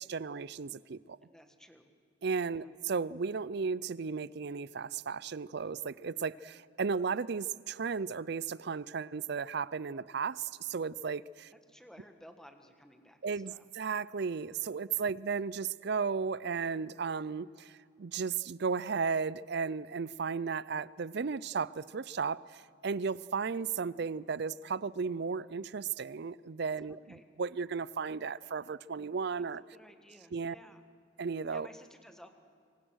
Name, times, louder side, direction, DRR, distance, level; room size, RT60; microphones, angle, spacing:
voice 1, 0.0-1.2 2.2-11.5 13.2-29.6 30.3-30.6 31.2-31.7, right 5 dB, 55° right, 0.5 m, -35 dB
voice 2, 1.3-1.9 2.5-2.7 11.5-13.7 14.9-15.2 26.8-27.3 29.6-30.8 31.5-32.3, equal, 5° left, 1.6 m, -56 dB
26.0 x 25.0 x 6.4 m
head